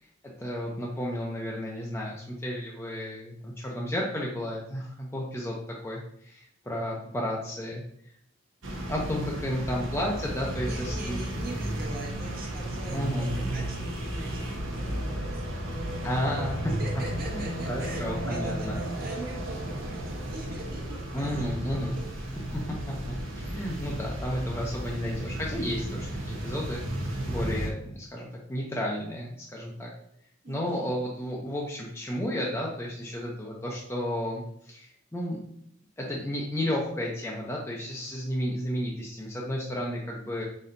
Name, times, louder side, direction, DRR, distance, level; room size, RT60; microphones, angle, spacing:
voice 1, 0.4-5.6 5.8-7.8 8.9-11.2 12.9-13.3 16.0-16.7 17.3-18.8 21.1-22.0 22.5-22.8 23.3-29.9 30.5-35.4 36.0-40.4, equal, 15° left, -3 dB, 0.5 m, -32 dB
sound 1, 8.6-27.7, right 1 dB, 75° right, 0.9 m, -34 dB
voice 2, 10.3-16.1 16.7-22.4 30.4-30.9, right 2 dB, 50° right, -2 dB, 1.1 m, -42 dB
4.2 x 4.1 x 2.6 m, 0.68 s
head